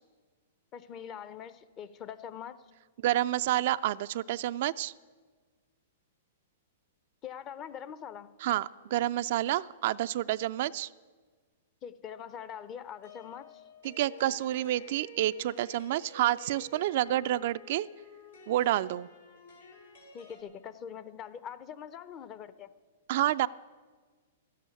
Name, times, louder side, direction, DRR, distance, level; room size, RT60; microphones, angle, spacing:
voice 1, 0.7-2.6 7.2-8.3 11.8-13.6 20.1-22.7, left 8 dB, 30° left, 14 dB, 0.7 m, -43 dB
voice 2, 3.0-4.9 8.4-10.9 13.8-17.9 18.5-19.1 23.1-23.5, right 14 dB, 55° right, 14 dB, 0.3 m, -29 dB
sound 1, 13.0-20.4, left 1 dB, 90° left, 3.8 m, -51 dB
13.0 x 8.4 x 9.4 m, 1.5 s
hypercardioid pair, 125°, 0 cm